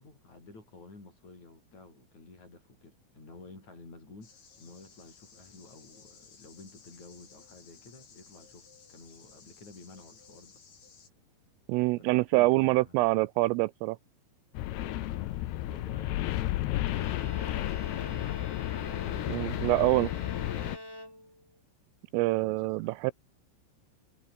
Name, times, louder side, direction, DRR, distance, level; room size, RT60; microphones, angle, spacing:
voice 1, 0.0-10.6 12.0-13.1 14.7-18.1 19.0-20.3 22.4-22.9, left 3 dB, 35° left, 9.1 m, -52 dB
sound 1, 4.2-11.1, left 6 dB, 50° left, 7.3 m, -57 dB
voice 2, 11.7-14.0 19.3-20.1 22.1-23.1, right 21 dB, 85° right, 3.1 m, -25 dB
sound 2, 14.5-20.8, left 15 dB, 75° left, 2.5 m, -32 dB
Bowed string instrument, 16.9-21.6, left 1 dB, 5° left, 4.6 m, -45 dB
omnidirectional pair, 6.0 m